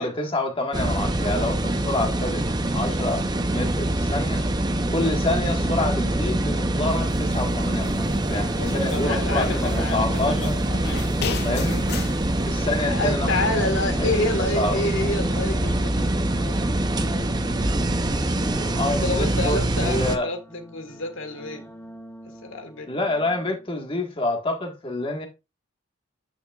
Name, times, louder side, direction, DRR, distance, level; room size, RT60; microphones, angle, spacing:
voice 1, 0.0-2.4 2.7-4.4 4.9-10.6 11.4-11.9 12.4-14.3 14.5-14.9 18.5-20.3 22.9-25.3, left 2 dB, 25° left, 1.6 m, -28 dB
sound 1, 0.7-20.2, right 1 dB, 20° right, 0.6 m, -24 dB
sound 2, 4.8-23.7, equal, 10° left, 1.5 m, -41 dB
sound 3, 7.1-7.4 7.8-9.0 9.4-10.6 10.8-12.2, left 6 dB, 50° left, 0.5 m, -35 dB
voice 2, 8.5-11.5 12.8-16.2 19.0-21.6 22.4-22.9, left 2 dB, 65° left, 1.7 m, -29 dB
9.9 x 5.8 x 2.4 m
head